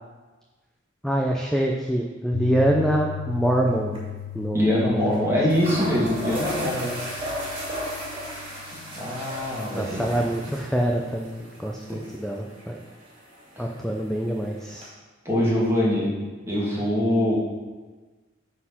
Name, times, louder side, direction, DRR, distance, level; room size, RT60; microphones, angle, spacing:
voice 1, 1.0-4.0 4.3-5.3 9.7-12.8 13.6-14.9, right 1 dB, 5° left, 0 dB, 0.5 m, -25 dB
Piano, 2.3-10.4, left 10 dB, 70° left, 0.5 m, -38 dB
sound 1, 3.4-3.7 3.9-4.0 5.1-5.2 5.5-14.9, equal, 30° right, 2.8 m, -36 dB
voice 2, 4.5-6.9 9.0-10.1 11.9-12.0 13.6-13.7 15.2-16.1 16.5-17.3, left 1 dB, 15° right, -6 dB, 2.3 m, -23 dB
9.5 x 4.3 x 5.7 m, 1.3 s
head